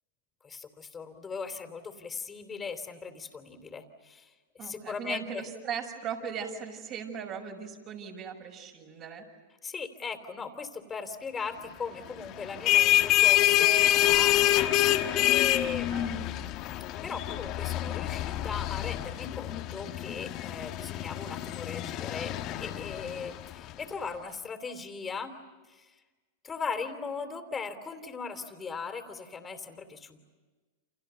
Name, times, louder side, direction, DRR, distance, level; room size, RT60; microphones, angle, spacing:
voice 1, 0.4-5.4 9.6-25.3 25.7-25.9 26.4-30.2, left 5 dB, 20° left, 8 dB, 3.2 m, -38 dB
voice 2, 4.6-9.2 15.9-16.5, right 7 dB, 40° right, 2 dB, 6.8 m, -39 dB
sound 1, 12.4-23.7, left 14 dB, 45° left, 1.6 m, -26 dB
30.0 x 28.0 x 6.9 m, 1.3 s
hypercardioid pair, 115°, 0 cm